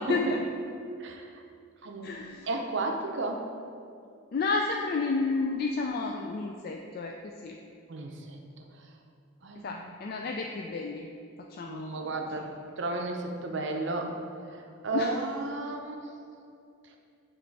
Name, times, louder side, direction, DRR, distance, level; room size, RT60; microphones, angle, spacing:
voice 1, 1.0-1.4 1.8-2.1 2.4-3.4 7.9-8.9 9.4-9.8 11.7-12.5 12.8-14.2 14.4-16.1 16.8-17.0, right 2 dB, 55° right, 2 dB, 0.6 m, -33 dB
voice 2, 2.0-2.5 4.3-7.6 9.6-11.1 11.5-12.1 14.9-15.1, left 3 dB, 45° left, 1 dB, 0.3 m, -31 dB
8.7 x 3.1 x 4.6 m, 2.5 s
head